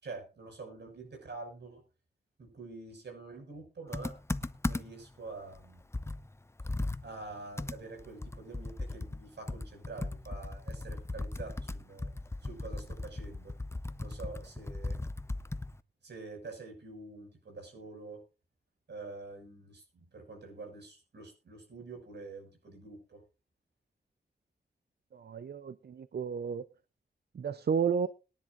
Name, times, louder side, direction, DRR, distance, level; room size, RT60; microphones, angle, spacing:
voice 1, 0.0-1.8 2.4-4.1 4.7-5.8 7.0-12.1 12.4-13.5 14.0-15.0 16.0-18.2 18.9-23.2, right 3 dB, 85° right, 4 dB, 6.4 m, -46 dB
Computer keyboard, 3.9-5.1 5.5-5.6 5.9-15.8, left 2 dB, 15° left, 0.6 m, -37 dB
voice 2, 25.1-26.7 27.3-28.1, right 6 dB, 70° right, 14 dB, 0.6 m, -32 dB
22.0 x 10.5 x 2.6 m, 0.31 s
wide cardioid pair, 125°, 17 cm